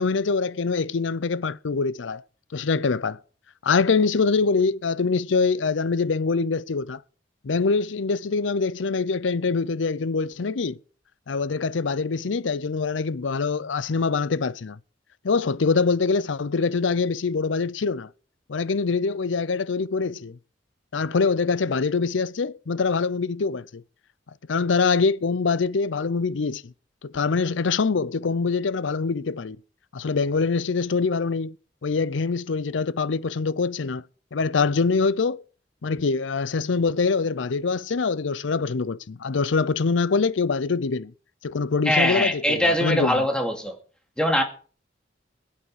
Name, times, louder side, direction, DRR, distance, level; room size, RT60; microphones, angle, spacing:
voice 1, 0.0-2.2 2.5-3.2 3.6-7.0 7.4-10.8 11.3-14.8 15.2-18.1 18.5-20.4 20.9-23.8 24.5-26.7 27.0-29.6 29.9-31.6 31.8-34.0 34.3-35.4 35.8-41.1 41.4-43.3, left 4 dB, 75° left, 0.6 m, -24 dB
voice 2, 41.9-43.7 44.2-44.4, equal, 5° left, 2.5 m, -22 dB
21.0 x 8.6 x 4.9 m
head